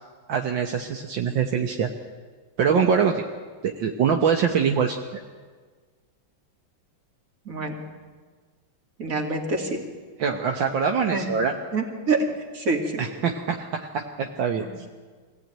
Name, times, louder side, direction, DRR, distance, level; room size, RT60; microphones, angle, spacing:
voice 1, 0.3-1.9 2.6-3.3 3.6-5.2 10.2-11.5 13.0-14.9, right 6 dB, 70° right, 3 dB, 1.9 m, -24 dB
voice 2, 9.0-9.8 11.1-11.3 11.7-12.3 12.5-12.8 14.6-14.7, right 3 dB, 45° right, 3 dB, 2.8 m, -26 dB
24.0 x 16.5 x 9.1 m, 1.5 s
omnidirectional pair, 2.2 m